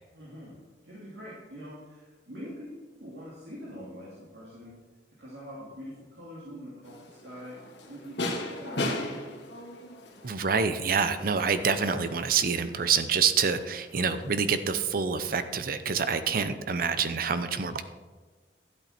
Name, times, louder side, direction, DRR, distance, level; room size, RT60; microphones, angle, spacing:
voice 1, 0.1-0.6 0.8-2.7 2.9-4.8 5.2-7.6 7.9-9.1, equal, 85° right, -7 dB, 2.7 m, -44 dB
sound 1, 6.8-14.6, left 1 dB, 80° left, 1.6 m, -38 dB
voice 2, 10.2-17.8, right 5 dB, 55° right, 11 dB, 0.6 m, -27 dB
12.5 x 8.4 x 4.4 m, 1.4 s
head